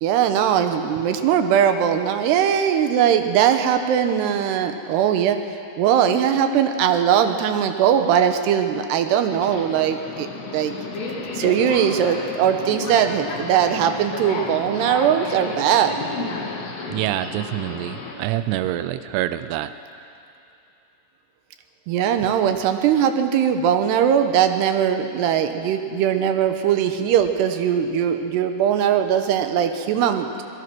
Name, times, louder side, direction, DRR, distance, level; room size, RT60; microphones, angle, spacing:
voice 1, 0.0-5.4 5.8-10.3 10.5-10.7 11.3-15.9 21.9-30.4, right 9 dB, 75° right, 7 dB, 2.8 m, -20 dB
Subway metro underground, 9.2-18.1, left 3 dB, 65° left, 4.8 m, -32 dB
voice 2, 16.9-19.7, right 13 dB, 90° right, 12 dB, 2.3 m, -26 dB
25.5 x 19.0 x 6.1 m, 2.6 s
omnidirectional pair, 5.5 m